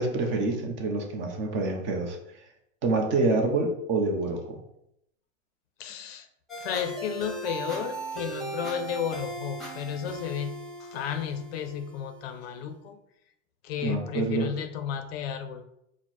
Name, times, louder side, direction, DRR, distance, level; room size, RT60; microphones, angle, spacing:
voice 1, 0.0-2.2 2.8-4.6 13.8-14.5, right 3 dB, 30° right, 3 dB, 0.7 m, -27 dB
voice 2, 5.8-6.3 6.6-13.0 13.6-15.6, left 8 dB, 50° left, 8 dB, 0.5 m, -33 dB
sound 1, 6.5-12.5, right 1 dB, ahead, 1.1 m, -38 dB
4.4 x 2.1 x 4.2 m, 0.79 s
hypercardioid pair, 120°, 38 cm